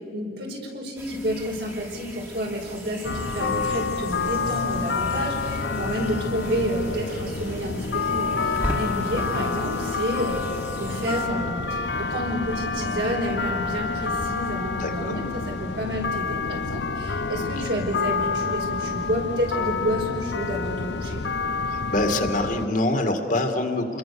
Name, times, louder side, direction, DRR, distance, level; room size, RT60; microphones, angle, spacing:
voice 1, 0.1-21.2, equal, 70° right, 0 dB, 5.0 m, -30 dB
sound 1, 1.0-11.3, right 1 dB, 15° right, 2.0 m, -38 dB
sound 2, 3.0-22.7, left 4 dB, 70° left, 0.8 m, -28 dB
voice 2, 14.8-15.2 17.4-17.5 21.7-24.0, left 1 dB, 50° left, 5 dB, 2.1 m, -25 dB
28.5 x 22.0 x 7.0 m, 2.5 s
head